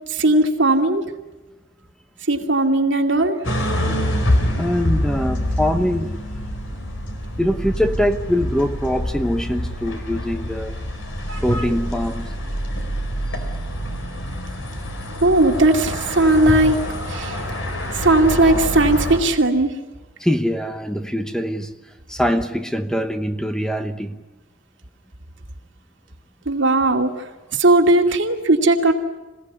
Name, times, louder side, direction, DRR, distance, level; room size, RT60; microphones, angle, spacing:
voice 1, 0.1-1.1 2.3-3.4 11.3-11.7 15.2-16.8 17.1-17.4 17.9-19.7 26.5-27.2 27.5-28.9, right 2 dB, 70° right, 2.5 m, -17 dB
sound 1, 3.4-19.2, equal, 85° left, 4.4 m, -26 dB
voice 2, 4.6-6.1 7.4-10.8 11.4-12.3 20.2-21.7 22.1-24.2, equal, 5° left, 0.9 m, -23 dB
26.0 x 17.0 x 9.8 m
head